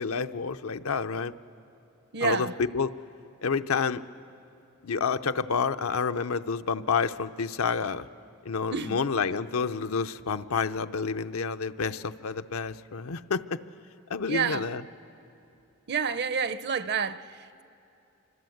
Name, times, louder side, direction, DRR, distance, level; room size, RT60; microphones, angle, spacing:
voice 1, 0.0-1.3 2.2-2.9 3.4-4.0 4.8-8.1 8.4-13.4 14.1-14.8, left 5 dB, 80° left, 0.7 m, -29 dB
voice 2, 2.1-2.5 8.7-9.0 14.3-14.7 15.9-17.3, right 6 dB, 55° right, 0.7 m, -28 dB
26.0 x 25.5 x 7.9 m
head